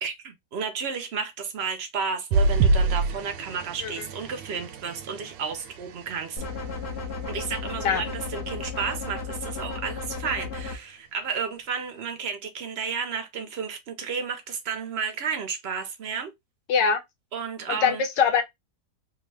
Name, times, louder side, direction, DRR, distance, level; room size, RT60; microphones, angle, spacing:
voice 1, 0.0-6.4 7.2-16.3 17.3-18.0, right 6 dB, 65° right, 0.6 m, -32 dB
sound 1, 2.3-7.0 7.6-7.8 8.2-8.3, right 3 dB, 85° right, 1.3 m, -27 dB
sound 2, 6.4-10.8, left 4 dB, 50° left, 0.8 m, -34 dB
voice 2, 16.7-17.0 17.7-18.4, left 6 dB, 80° left, 1.4 m, -22 dB
3.6 x 2.3 x 3.3 m
omnidirectional pair, 1.9 m